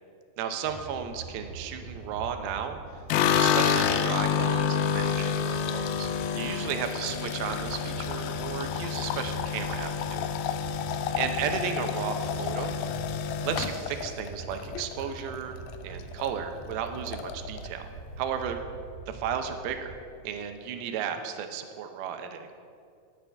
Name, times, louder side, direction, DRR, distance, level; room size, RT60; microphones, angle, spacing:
voice 1, 0.4-2.8 3.3-10.3 10.8-12.8 13.4-15.6 15.8-17.8 18.2-18.6 19.1-20.0 20.2-22.5, right 8 dB, 80° right, 7 dB, 2.6 m, -34 dB
sound 1, 0.6-19.9, right 3 dB, 50° right, 2.5 m, -43 dB
sound 2, 3.1-15.4 15.7-16.3 16.6-16.7 17.0-17.7, left 8 dB, 80° left, 2.4 m, -29 dB
19.0 x 8.6 x 3.4 m, 2.3 s
omnidirectional pair, 4.5 m